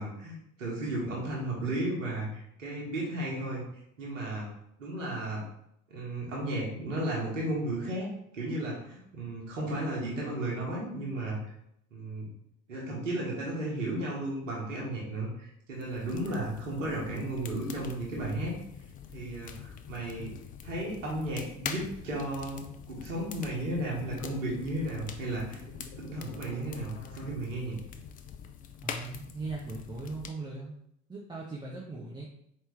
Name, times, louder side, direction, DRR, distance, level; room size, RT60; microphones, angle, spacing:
voice 1, 0.0-3.6 4.0-4.5 4.8-5.4 5.9-8.1 8.3-11.4 11.9-12.3 12.7-18.5 19.1-20.4 20.6-22.6 22.9-25.6 26.0-27.8, right 1 dB, 75° right, -4 dB, 1.3 m, -34 dB
sound 1, 15.8-30.3, left 8 dB, 25° left, 0.3 m, -44 dB
sound 2, 24.8-27.3, left 3 dB, 60° left, 0.9 m, -50 dB
voice 2, 28.8-30.7 31.1-32.3, right 3 dB, 10° right, -4 dB, 0.7 m, -39 dB
4.6 x 3.2 x 3.3 m, 0.73 s
figure-of-eight pair, 65°, 38 cm